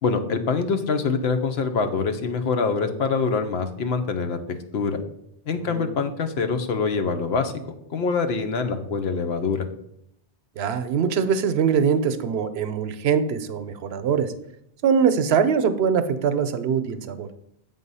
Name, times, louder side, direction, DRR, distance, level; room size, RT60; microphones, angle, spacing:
voice 1, 0.0-4.4 4.7-5.0 5.5-7.5 7.9-9.7, left 4 dB, 80° left, 8 dB, 1.0 m, -24 dB
voice 2, 5.6-5.9 10.6-14.3 14.8-17.3, right 7 dB, 80° right, 11 dB, 0.9 m, -22 dB
7.7 x 3.8 x 5.4 m, 0.77 s
omnidirectional pair, 1.1 m